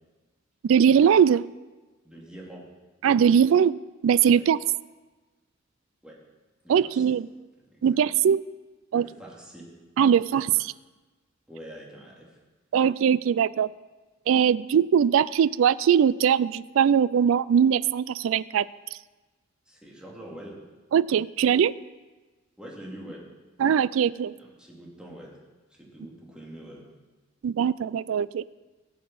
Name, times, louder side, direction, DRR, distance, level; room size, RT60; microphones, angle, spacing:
voice 1, 0.6-1.5 3.0-3.8 4.0-4.6 6.7-7.3 7.8-8.4 8.9-9.0 10.0-10.7 12.7-13.7 14.3-18.7 18.9-19.0 20.9-21.7 23.6-24.3 27.4-28.6, right 8 dB, 75° right, 19 dB, 0.3 m, -21 dB
voice 2, 2.0-2.7 4.3-4.5 6.0-6.2 6.6-7.0 7.7-8.0 8.9-9.7 11.5-12.4 19.7-20.6 22.6-23.2 24.4-25.4 25.7-26.8, right 1 dB, 5° right, -4 dB, 2.6 m, -44 dB
16.0 x 7.3 x 6.1 m, 1.2 s
head